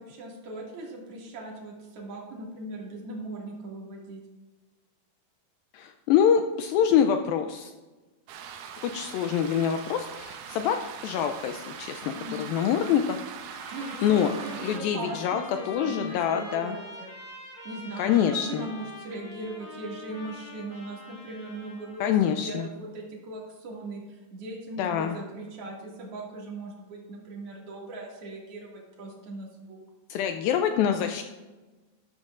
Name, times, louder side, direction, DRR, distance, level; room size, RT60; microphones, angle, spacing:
voice 1, 0.0-4.2 12.1-12.5 13.7-17.1 17.6-22.1 22.4-29.8, right 2 dB, 45° right, -2 dB, 2.6 m, -39 dB
voice 2, 5.7-7.7 8.8-10.8 11.0-12.1 12.4-13.3 14.0-14.3 14.6-16.8 18.0-18.7 22.0-22.7 24.8-25.2 30.1-31.2, left 8 dB, 85° left, 6 dB, 2.1 m, -25 dB
sound 1, 8.3-14.8, right 8 dB, 75° right, 2.1 m, -41 dB
Trumpet, 13.5-22.1, left 1 dB, 25° left, 2.4 m, -45 dB
13.0 x 12.5 x 2.5 m, 1.2 s
omnidirectional pair, 4.6 m